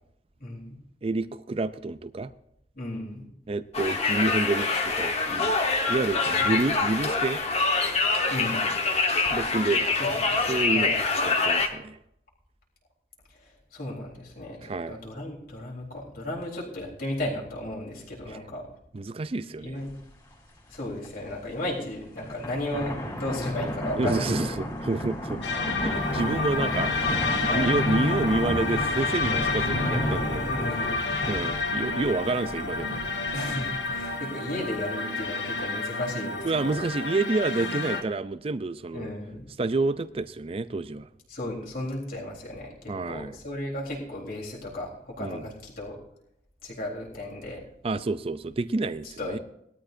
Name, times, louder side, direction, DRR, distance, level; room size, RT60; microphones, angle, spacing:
voice 1, 0.4-0.8 2.7-3.2 6.4-6.6 8.3-8.7 10.0-11.0 13.4-18.7 19.6-19.9 20.7-24.5 26.6-26.7 27.5-27.8 30.5-31.1 33.3-36.8 38.9-39.5 41.3-46.0 46.6-47.6 49.2-49.4, left 1 dB, 55° left, -3 dB, 3.8 m, -35 dB
voice 2, 1.0-2.3 3.5-5.5 5.9-7.4 9.2-9.9 10.5-11.0 11.3-12.0 14.6-15.0 18.9-19.8 24.0-25.4 25.7-27.2 27.5-30.5 31.3-33.0 36.4-39.1 39.6-41.1 42.9-43.4 45.2-45.5 47.8-49.4, right 3 dB, 35° right, 13 dB, 0.4 m, -28 dB
Conversation, 3.7-11.7, left 3 dB, 35° left, 1.3 m, -25 dB
sound 1, 19.9-20.0 20.3-20.4 20.9-21.3 22.0-34.2, equal, 20° left, 3.6 m, -34 dB
sound 2, 25.4-38.0, left 3 dB, 85° left, 1.5 m, -29 dB
19.0 x 13.0 x 2.7 m, 0.75 s
head